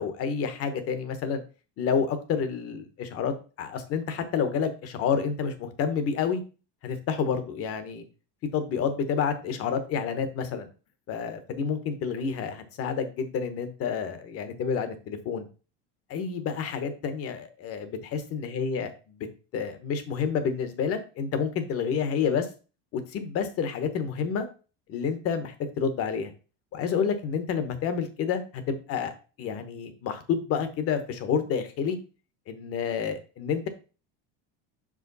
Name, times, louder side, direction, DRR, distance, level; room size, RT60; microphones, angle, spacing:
voice 1, 0.0-1.4 1.8-6.4 6.8-8.0 8.5-10.7 11.1-15.5 16.1-18.9 19.5-22.5 22.9-24.5 24.9-26.3 26.7-29.1 29.4-32.0 32.5-33.7, left 6 dB, 40° left, 10 dB, 1.1 m, -29 dB
6.1 x 5.1 x 4.0 m, 0.35 s
cardioid pair, 155°, 35 cm